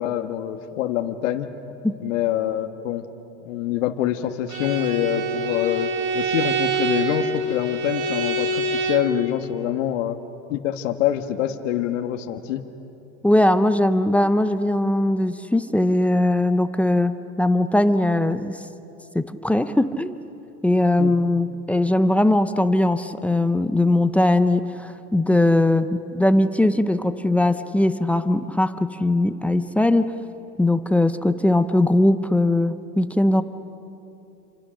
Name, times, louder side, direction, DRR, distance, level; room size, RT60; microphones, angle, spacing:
voice 1, 0.0-1.5 2.0-3.1 3.4-10.2 10.5-12.6 21.0-21.1, left 11 dB, 75° left, 6 dB, 1.5 m, -25 dB
Bowed string instrument, 4.5-9.2, right 2 dB, 85° right, 3.9 m, -25 dB
voice 2, 13.2-18.6 19.1-20.2 20.6-30.2 30.6-33.4, left 1 dB, 5° left, 11 dB, 0.5 m, -20 dB
28.5 x 26.5 x 6.5 m, 2.8 s
supercardioid pair, 130°, 38 cm